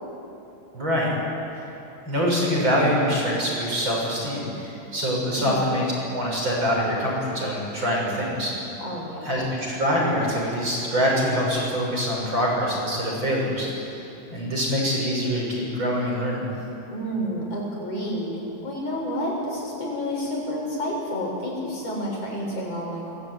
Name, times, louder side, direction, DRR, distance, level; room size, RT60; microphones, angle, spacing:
voice 1, 0.7-1.1 2.0-5.9 6.1-8.5 9.2-14.0 14.3-16.5, equal, 25° right, -3 dB, 7.6 m, -24 dB
voice 2, 5.3-5.7 8.8-9.4 16.9-23.1, equal, 30° left, -2 dB, 7.8 m, -30 dB
29.0 x 21.0 x 9.7 m, 2.9 s
omnidirectional pair, 5.4 m